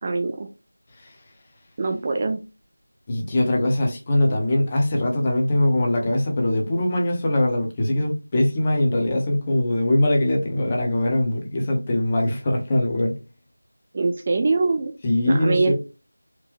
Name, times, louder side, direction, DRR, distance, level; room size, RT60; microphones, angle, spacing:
voice 1, 0.0-0.5 1.8-2.4 13.9-14.9 15.3-15.7, right 3 dB, 25° right, 0.4 m, -23 dB
voice 2, 3.1-13.1 15.0-15.7, left 1 dB, 20° left, 0.8 m, -22 dB
4.5 x 2.7 x 3.0 m
figure-of-eight pair, 170°, 0 cm